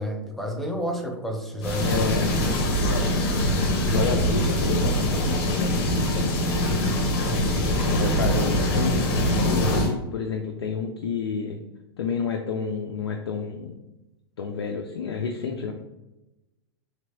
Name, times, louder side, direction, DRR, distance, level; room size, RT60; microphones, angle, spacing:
voice 1, 0.0-2.4 8.1-8.4, equal, ahead, 2 dB, 0.5 m, -31 dB
sound 1, 1.6-9.9, equal, 50° left, 1.0 m, -23 dB
voice 2, 1.8-3.5 3.9-6.1 7.9-11.6 12.0-13.7 14.4-15.7, left 5 dB, 80° left, 3 dB, 0.4 m, -30 dB
3.2 x 2.9 x 2.7 m, 0.97 s
hypercardioid pair, 105°, 13 cm